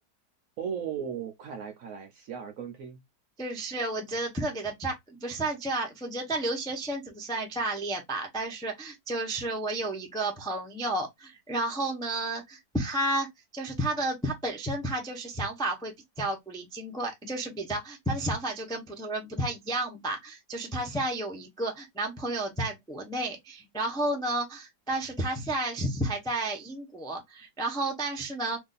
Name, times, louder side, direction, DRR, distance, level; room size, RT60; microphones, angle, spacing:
voice 1, 0.6-3.0, right 8 dB, 65° right, 0.8 m, -36 dB
voice 2, 3.4-13.3 13.5-28.6, right 1 dB, 5° left, 0.3 m, -32 dB
3.0 x 2.6 x 3.8 m
omnidirectional pair, 1.9 m